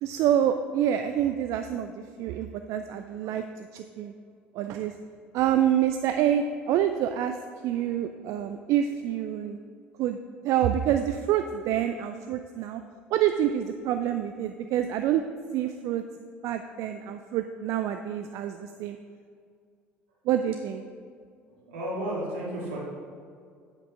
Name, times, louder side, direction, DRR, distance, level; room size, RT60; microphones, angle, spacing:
voice 1, 0.0-1.9 2.2-3.4 3.7-4.1 4.5-4.9 5.3-7.3 7.6-9.6 10.0-10.2 10.4-12.8 13.1-15.2 15.5-16.0 16.4-19.0 20.3-20.8, right 10 dB, 50° right, 8 dB, 0.4 m, -27 dB
voice 2, 21.6-22.8, equal, 70° right, -4 dB, 2.3 m, -32 dB
8.5 x 5.3 x 5.8 m, 2.2 s
figure-of-eight pair, 65°, 6 cm